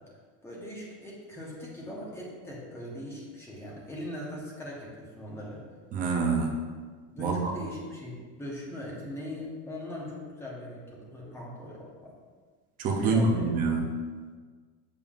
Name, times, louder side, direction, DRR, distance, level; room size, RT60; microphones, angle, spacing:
voice 1, 0.4-5.6 7.1-12.1 13.0-13.5, left 1 dB, 5° left, -4 dB, 0.9 m, -40 dB
voice 2, 5.9-6.6 7.2-7.5 12.8-13.9, right 3 dB, 20° right, 1 dB, 0.4 m, -26 dB
7.2 x 6.7 x 2.4 m, 1.5 s
cardioid pair, 175°, 43 cm